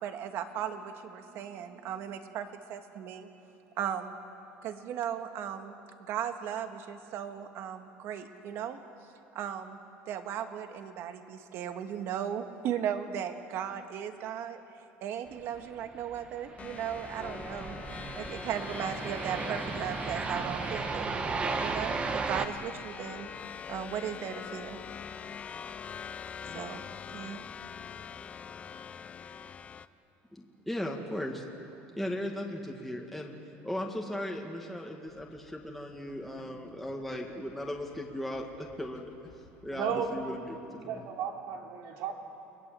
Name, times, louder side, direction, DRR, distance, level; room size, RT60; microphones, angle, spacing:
voice 1, 0.0-3.3 3.8-4.2 4.6-8.8 9.3-9.8 10.1-14.6 15.0-17.8 18.2-21.2 21.6-23.3 23.7-24.8 26.5-26.8 27.1-27.4, right 9 dB, 55° right, 7 dB, 1.8 m, -37 dB
sound 1, 15.8-22.5, right 4 dB, 25° right, 1.3 m, -35 dB
sound 2, 16.6-29.9, left 7 dB, 25° left, 0.6 m, -43 dB
voice 2, 30.3-31.4 32.0-33.3 33.6-39.1 39.6-40.7, left 1 dB, ahead, -1 dB, 2.0 m, -37 dB
sound 3, 35.1-40.1, left 5 dB, 85° left, 2.9 m, -57 dB
voice 3, 39.7-40.6 40.8-42.1, right 7 dB, 70° right, 2 dB, 3.5 m, -34 dB
29.5 x 21.0 x 7.7 m, 2.7 s
cardioid pair, 145°, 5 cm